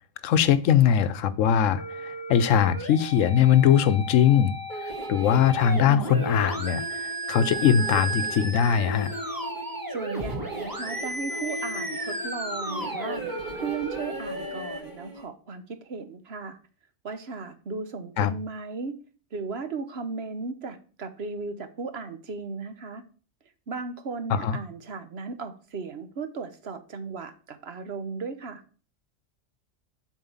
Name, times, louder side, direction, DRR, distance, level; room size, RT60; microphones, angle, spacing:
voice 1, 0.2-4.5 4.8-9.1 18.2-18.3 24.3-24.6, left 8 dB, 80° left, 1.0 m, -21 dB
sound 1, 1.8-14.8, right 2 dB, 15° right, 1.2 m, -34 dB
sound 2, 4.7-15.2, right 1 dB, 35° right, 2.5 m, -38 dB
voice 2, 9.9-13.2 13.5-16.6 17.0-19.0 19.3-23.0 23.7-28.6, right 4 dB, 55° right, 1.2 m, -36 dB
7.4 x 4.6 x 7.1 m
omnidirectional pair, 1.3 m